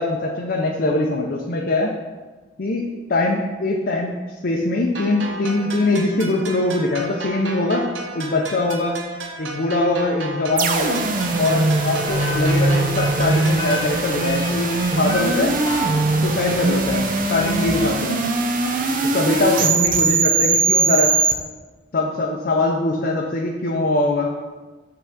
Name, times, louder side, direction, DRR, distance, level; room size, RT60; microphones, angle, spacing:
voice 1, 0.0-1.9 2.6-4.2 4.4-7.8 8.1-9.0 9.4-11.0 11.4-15.5 16.2-18.2 19.0-21.1 21.9-24.3, left 2 dB, 55° left, -1 dB, 0.6 m, -22 dB
sound 1, 5.0-14.0, right 2 dB, 80° right, 0.8 m, -33 dB
sound 2, 10.6-21.3, right 3 dB, 45° right, 0.6 m, -21 dB
sound 3, 12.1-17.9, left 1 dB, 25° left, 0.9 m, -32 dB
5.6 x 3.8 x 6.0 m, 1.3 s
head